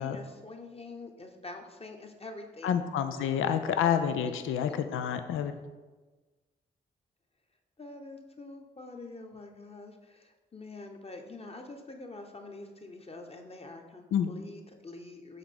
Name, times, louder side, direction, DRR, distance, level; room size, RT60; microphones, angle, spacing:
voice 1, 0.0-2.8 3.1-3.4 4.7-4.8 7.8-15.4, left 2 dB, 30° left, 4 dB, 1.0 m, -46 dB
voice 2, 2.6-5.5 14.1-14.3, left 8 dB, 80° left, 9 dB, 0.5 m, -28 dB
5.8 x 3.6 x 5.2 m, 1.3 s
supercardioid pair, 40°, 21 cm